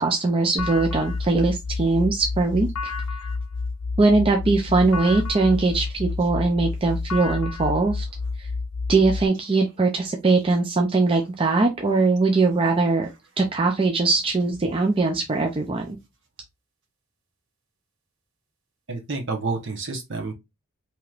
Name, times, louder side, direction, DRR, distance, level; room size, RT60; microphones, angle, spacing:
voice 1, 0.0-2.9 4.0-8.0 8.4-8.5 8.9-13.1 13.4-16.0, right 3 dB, 25° right, 0.4 m, -21 dB
sound 1, 0.6-9.3, left 4 dB, 90° left, 0.6 m, -30 dB
voice 2, 18.9-20.3, right 3 dB, 55° right, 1.0 m, -29 dB
4.7 x 2.9 x 2.4 m
head